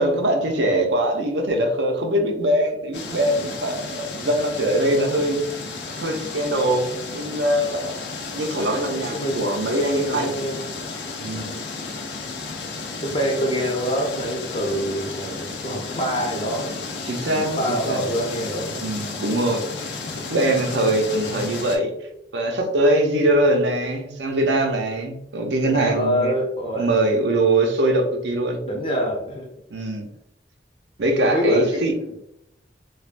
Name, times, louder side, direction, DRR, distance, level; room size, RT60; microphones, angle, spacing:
voice 1, 0.0-5.4 5.9-6.9 7.1-10.3 11.2-11.5 17.1-18.0 18.7-21.9 22.3-26.3 26.8-28.6 29.7-30.1 31.0-31.9, right 1 dB, 85° right, 3 dB, 0.6 m, -22 dB
sound 1, 2.9-21.8, left 4 dB, 80° left, 0.5 m, -33 dB
voice 2, 9.0-9.4 10.0-10.6 11.2-11.7 13.0-16.9 17.3-19.1 25.6-26.9 28.7-29.5 31.2-32.2, equal, 30° left, 0 dB, 0.6 m, -26 dB
3.3 x 2.3 x 2.5 m, 0.79 s
head